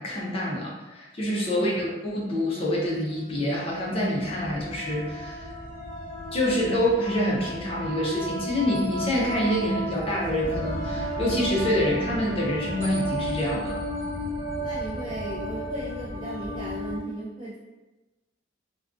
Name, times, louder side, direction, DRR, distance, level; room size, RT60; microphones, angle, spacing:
voice 1, 0.0-5.5 6.3-13.7, left 1 dB, 30° left, -4 dB, 0.5 m, -26 dB
sound 1, 2.9-3.0 3.6-17.0, equal, 40° right, 0.9 m, -33 dB
voice 2, 14.6-17.6, right 1 dB, 25° right, -7 dB, 0.4 m, -36 dB
2.4 x 2.2 x 2.4 m, 1.1 s
head